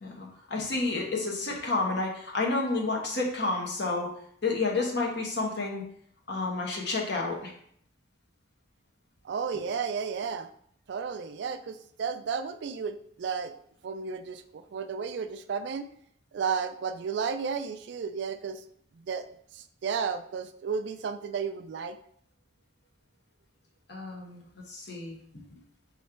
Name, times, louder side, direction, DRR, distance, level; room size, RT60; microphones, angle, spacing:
voice 1, 0.0-4.1 4.4-5.8 6.3-7.5 23.9-25.6, left 3 dB, 60° left, 0 dB, 1.0 m, -30 dB
voice 2, 9.2-10.5 10.9-13.5 13.8-15.9 16.3-18.6 18.9-19.3 19.5-22.0, right 6 dB, 60° right, 10 dB, 0.3 m, -33 dB
3.8 x 3.2 x 4.4 m, 0.65 s
head